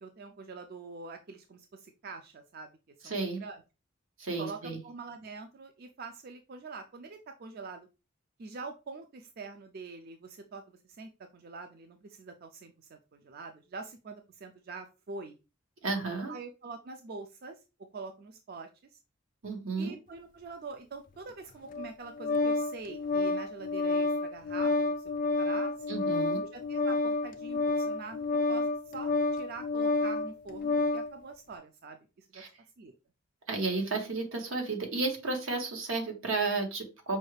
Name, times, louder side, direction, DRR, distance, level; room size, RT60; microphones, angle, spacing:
voice 1, 0.0-2.7 3.0-3.6 4.4-7.9 8.4-15.4 16.3-17.5 17.9-19.0 19.8-25.0 25.4-25.7 26.5-32.4 32.8-32.9, right 4 dB, 50° right, 6 dB, 0.4 m, -45 dB
voice 2, 3.0-3.4 4.2-4.8 15.8-16.3 19.4-19.9 25.9-26.4 32.3-32.5 33.5-37.2, right 3 dB, 90° right, 2 dB, 1.3 m, -32 dB
Organ, 21.7-31.1, left 3 dB, 40° left, 0.3 m, -29 dB
5.3 x 2.3 x 3.2 m, 0.30 s
head